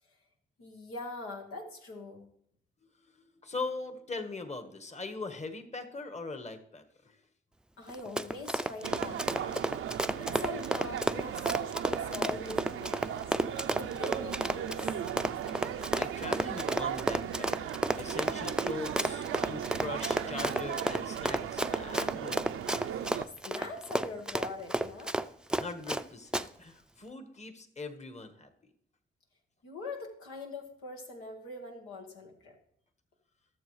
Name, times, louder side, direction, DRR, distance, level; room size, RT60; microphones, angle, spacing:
voice 1, 0.6-2.3 7.8-9.6 10.2-13.2 13.7-15.1 23.4-25.1 29.6-32.6, left 2 dB, 90° left, 2 dB, 1.4 m, -43 dB
voice 2, 3.4-7.2 15.9-17.5 18.0-22.4 25.6-28.5, left 3 dB, 30° left, 7 dB, 1.4 m, -40 dB
Run, 7.9-26.0 26.3-26.5, right 1 dB, 5° right, 0.5 m, -32 dB
sound 1, 8.8-23.3, right 9 dB, 80° right, 0.6 m, -37 dB
17.0 x 7.0 x 3.2 m, 0.68 s
supercardioid pair, 50°, 21 cm